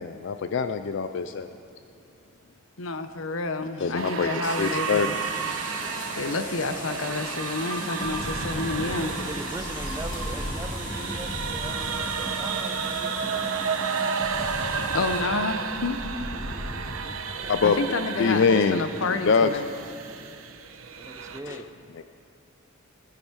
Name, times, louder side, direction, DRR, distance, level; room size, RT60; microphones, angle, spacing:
voice 1, 0.0-1.5 3.8-5.1 5.5-5.6 17.5-17.8 18.2-19.7 21.5-21.6, left 5 dB, 60° left, 9 dB, 0.4 m, -24 dB
voice 2, 2.8-5.1 6.2-9.1 14.9-16.0 17.6-19.7, left 3 dB, 75° left, 9 dB, 0.8 m, -29 dB
sound 1, 3.9-21.4, right 6 dB, 80° right, 0.8 m, -32 dB
sound 2, 4.4-15.2, left 2 dB, 40° left, 1.7 m, -40 dB
sound 3, 7.8-16.8, equal, 15° left, 2.3 m, -36 dB
voice 3, 8.8-13.4 17.4-17.5 21.0-21.7, right 2 dB, 15° right, 8 dB, 0.5 m, -41 dB
20.0 x 9.8 x 4.7 m, 2.9 s
head